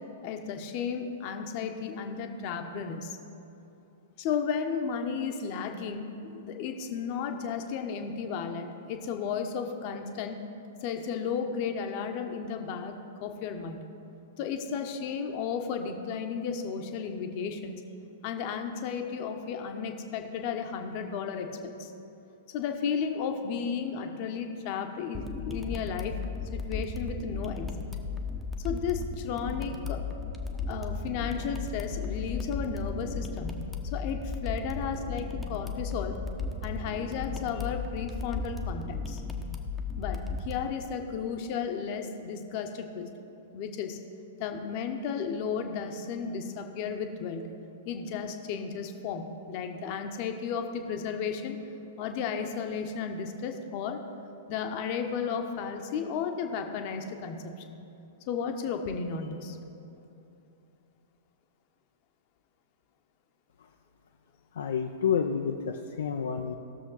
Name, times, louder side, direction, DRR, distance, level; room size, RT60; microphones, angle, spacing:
voice 1, 0.2-3.2 4.2-10.4 10.8-13.8 14.4-17.8 18.2-21.9 22.5-26.2 26.5-27.8 28.6-30.0 30.7-36.2 36.6-39.2 40.0-43.1 43.5-44.0 44.4-47.5 47.8-51.6 52.0-54.0 54.5-57.8 58.3-59.6, left 6 dB, 40° left, 5 dB, 0.9 m, -34 dB
sound 1, 25.1-40.6, left 4 dB, 5° left, 0.8 m, -35 dB
voice 2, 64.5-66.6, left 7 dB, 60° left, 3 dB, 0.5 m, -29 dB
17.0 x 6.8 x 4.0 m, 2.8 s
figure-of-eight pair, 105°, 0 cm